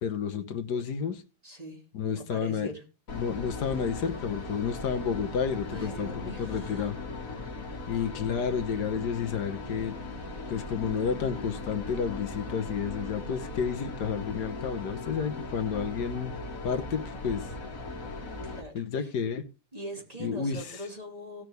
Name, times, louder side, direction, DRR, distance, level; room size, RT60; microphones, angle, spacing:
voice 1, 0.0-1.2 1.9-2.7 3.1-6.1 6.4-6.9 7.9-10.0 10.5-16.3 16.6-17.5 18.8-19.4 20.2-20.6, left 6 dB, 85° left, 8 dB, 1.7 m, -31 dB
voice 2, 1.4-2.8 5.7-6.9 18.4-19.1 19.7-21.4, right 1 dB, 25° right, 0 dB, 3.1 m, -42 dB
sound 1, 3.1-18.6, left 2 dB, 55° left, 2.2 m, -38 dB
18.0 x 6.2 x 3.4 m, 0.33 s
omnidirectional pair, 1.7 m